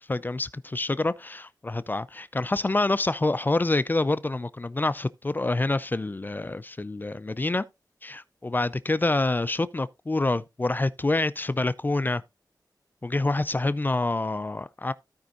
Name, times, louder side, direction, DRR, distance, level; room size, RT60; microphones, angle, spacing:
voice 1, 0.1-7.6 8.0-12.2 13.0-14.9, left 2 dB, 25° left, 0.4 m, -27 dB
16.0 x 5.3 x 2.5 m
wide cardioid pair, 90°, 8 cm